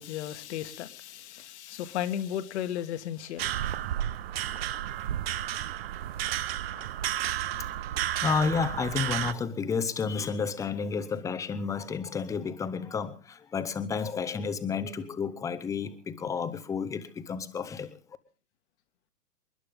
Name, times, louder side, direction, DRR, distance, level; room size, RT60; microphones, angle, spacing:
voice 1, 0.0-3.5 6.7-6.9, left 11 dB, 45° left, 10 dB, 1.5 m, -35 dB
sound 1, 3.4-9.3, right 12 dB, 40° right, 0.8 m, -32 dB
voice 2, 8.2-18.0, left 5 dB, 5° left, 12 dB, 0.8 m, -31 dB
28.0 x 11.5 x 3.6 m, 0.39 s
figure-of-eight pair, 125°, 47 cm